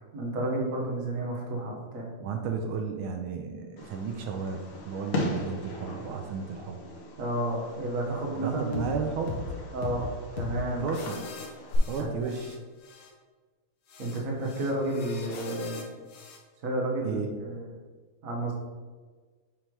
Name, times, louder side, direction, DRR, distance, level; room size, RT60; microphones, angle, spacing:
voice 1, 0.1-2.1 7.2-9.1 9.7-10.9 11.1-11.2 12.0-12.4 14.0-15.9 16.6-17.7 18.2-18.5, right 1 dB, 45° right, -1 dB, 1.3 m, -31 dB
voice 2, 2.2-6.8 8.3-9.4 10.8-11.2 11.8-12.6 17.0-17.3, right 5 dB, 80° right, 4 dB, 1.5 m, -33 dB
Fireworks, 3.8-11.8, left 1 dB, 80° left, 2.0 m, -39 dB
sound 1, 8.7-8.9 9.3-9.5 9.8-10.0 10.4-10.6 10.9-12.6 12.8-13.1 13.9-16.4, left 4 dB, 60° left, 1.4 m, -40 dB
7.2 x 3.4 x 4.6 m, 1.4 s
omnidirectional pair, 2.4 m